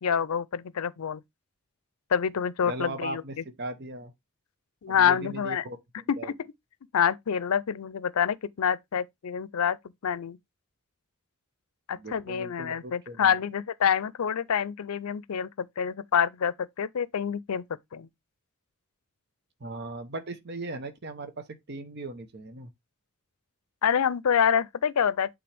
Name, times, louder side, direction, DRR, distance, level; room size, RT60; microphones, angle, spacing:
voice 1, 0.0-1.2 2.1-3.2 4.8-5.6 6.1-6.3 6.9-9.8 10.0-10.4 11.9-17.6 17.9-18.1 23.8-25.3, left 7 dB, 90° left, 0.5 m, -27 dB
voice 2, 2.6-4.1 4.9-5.8 6.2-6.3 12.0-13.3 19.6-22.7, right 2 dB, 50° right, 0.9 m, -38 dB
8.6 x 3.8 x 3.4 m
head